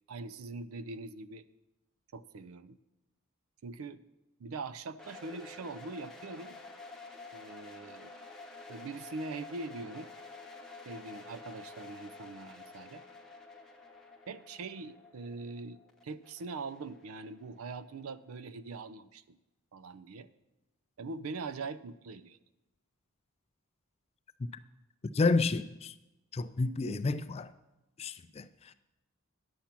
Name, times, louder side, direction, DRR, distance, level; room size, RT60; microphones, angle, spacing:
voice 1, 0.1-1.5 2.1-2.8 3.6-4.0 4.4-6.6 7.3-8.1 8.7-10.1 10.9-13.0 14.3-19.4 19.7-20.3 21.0-22.4 26.8-27.0, right 3 dB, 80° right, 0.5 m, -42 dB
sound 1, 5.0-17.8, left 3 dB, ahead, 0.8 m, -50 dB
voice 2, 25.1-25.9 26.3-27.5 28.0-28.7, left 3 dB, 30° left, 0.3 m, -30 dB
10.5 x 7.1 x 5.9 m
head